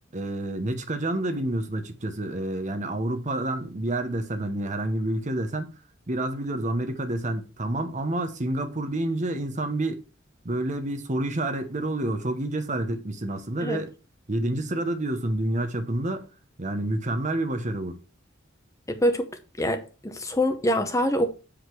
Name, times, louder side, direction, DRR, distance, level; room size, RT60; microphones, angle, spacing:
voice 1, 0.1-5.7 6.1-10.0 10.4-13.9 14.3-16.3 16.6-18.0, right 1 dB, 35° right, 1.0 m, -28 dB
voice 2, 18.9-19.3 19.6-21.3, equal, 15° left, 0.7 m, -25 dB
8.0 x 5.1 x 4.7 m
head